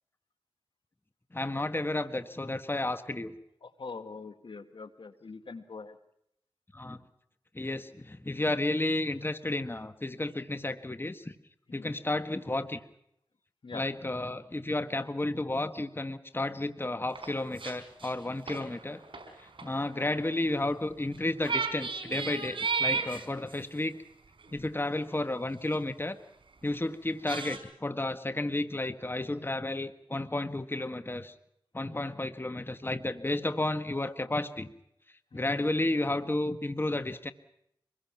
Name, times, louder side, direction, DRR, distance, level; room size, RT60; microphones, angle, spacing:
voice 1, 1.3-3.3 6.7-7.0 7.5-11.3 11.7-12.8 13.7-19.0 19.4-24.0 24.5-26.2 26.6-31.3 31.7-34.7 35.3-37.3, left 2 dB, 25° left, 10 dB, 1.5 m, -32 dB
voice 2, 3.6-6.0 11.7-12.0 13.6-13.8 35.3-35.6, left 4 dB, 65° left, 10 dB, 1.9 m, -44 dB
sound 1, 17.1-17.7 18.0-20.2 21.1-21.2 21.4-23.6 24.4-24.5 25.7-25.8 27.3-27.6, right 4 dB, 70° right, 4.9 m, -33 dB
26.0 x 22.0 x 5.9 m, 0.76 s
cardioid pair, 45°, 9 cm